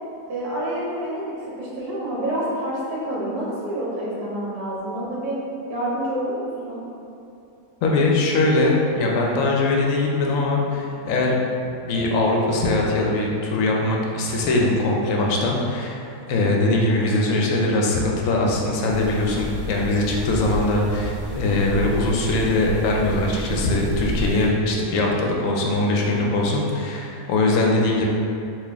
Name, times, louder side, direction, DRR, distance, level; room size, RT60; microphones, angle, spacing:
voice 1, 0.3-5.4 5.7-6.8, right 1 dB, 70° right, -6 dB, 1.5 m, -28 dB
voice 2, 7.8-11.4 11.8-28.1, left 2 dB, 65° left, -1 dB, 0.9 m, -21 dB
sound 1, 18.9-24.5, equal, 5° right, 1.1 m, -31 dB
4.2 x 2.5 x 3.4 m, 2.7 s
omnidirectional pair, 1.7 m